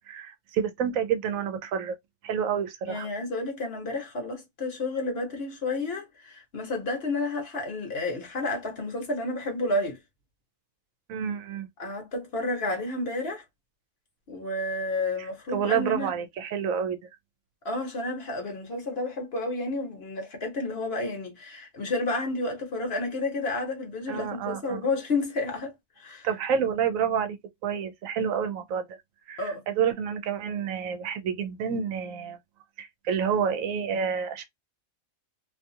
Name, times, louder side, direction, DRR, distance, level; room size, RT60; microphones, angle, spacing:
voice 1, 0.1-2.0 2.2-3.1 11.1-11.7 15.2-17.0 24.1-24.8 26.2-27.4 27.6-28.9 29.3-32.4 32.8-34.4, right 7 dB, 80° right, 1.0 m, -29 dB
voice 2, 2.9-10.0 11.8-13.4 14.3-16.1 17.6-26.3 29.4-29.6, left 2 dB, 50° left, 1.0 m, -31 dB
2.6 x 2.3 x 2.7 m
omnidirectional pair, 1.4 m